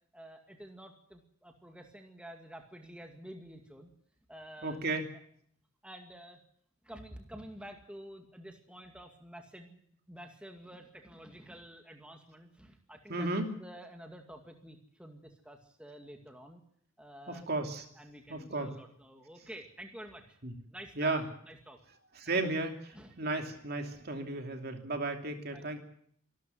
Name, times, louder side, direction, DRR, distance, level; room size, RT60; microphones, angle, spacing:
voice 1, 0.1-3.9 4.3-4.8 5.8-6.4 6.8-9.8 10.1-16.6 17.0-17.5 18.0-20.4 20.7-21.8 22.3-22.4 22.9-23.2 25.5-25.7, equal, 5° right, 3 dB, 2.2 m, -50 dB
voice 2, 4.6-5.1 13.1-13.5 17.3-17.8 18.3-18.7 20.4-20.5 21.0-21.2 22.2-25.8, right 2 dB, 50° right, 4 dB, 2.8 m, -34 dB
25.0 x 13.0 x 9.4 m, 0.66 s
head